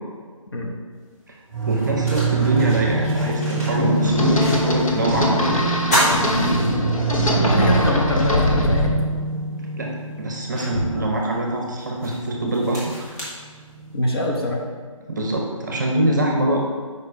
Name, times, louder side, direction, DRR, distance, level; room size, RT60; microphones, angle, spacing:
sound 1, 1.0-1.1 1.6-5.0 5.3-5.4 5.8-7.3 7.7-7.8 9.3-9.4 9.9-14.1, equal, 30° left, 1.5 m, -28 dB
sound 2, 1.5-14.3, right 4 dB, 10° right, 1.3 m, -26 dB
voice 1, 1.7-5.6 9.8-12.9 15.1-16.6, right 1 dB, 35° right, 0 dB, 0.8 m, -24 dB
sound 3, 3.8-8.9, equal, 75° left, 1.2 m, -21 dB
voice 2, 6.7-8.9 13.9-14.6, left 1 dB, 45° left, -1 dB, 0.9 m, -25 dB
5.0 x 4.6 x 4.7 m, 1.5 s
hypercardioid pair, 170°, 18 cm